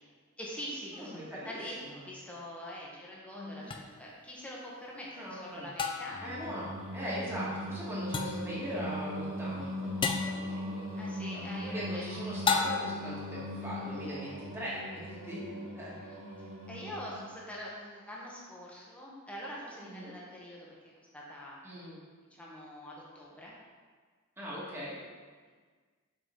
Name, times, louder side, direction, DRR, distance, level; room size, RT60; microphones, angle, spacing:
voice 1, 0.4-1.2 1.4-6.3 10.9-12.0 15.9-16.2 16.7-21.6 22.3-23.5, equal, 5° left, -5 dB, 1.1 m, -44 dB
voice 2, 0.9-1.6 2.0-2.1 3.3-3.7 5.1-5.7 6.2-11.4 11.7-15.9 19.8-20.1 21.6-22.0 24.4-25.0, equal, 10° right, -8 dB, 1.7 m, -40 dB
sound 1, 3.7-3.8 5.8-6.3 8.1-8.5 10.0-10.4 12.5-13.1, left 5 dB, 25° left, 0.3 m, -31 dB
Singing, 6.1-17.3, equal, 70° right, 1.3 m, -39 dB
5.3 x 5.2 x 3.8 m, 1.5 s
head